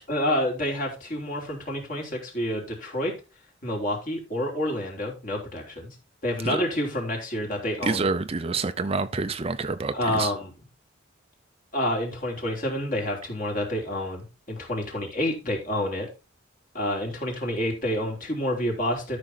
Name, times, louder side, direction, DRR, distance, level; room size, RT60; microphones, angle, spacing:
voice 1, 0.1-3.1 3.6-6.0 6.2-8.1 9.9-10.5 11.7-16.1 16.7-19.2, left 1 dB, 40° left, 3.6 m, -28 dB
voice 2, 7.8-10.3, right 4 dB, 30° right, 0.5 m, -27 dB
13.0 x 6.2 x 4.2 m
head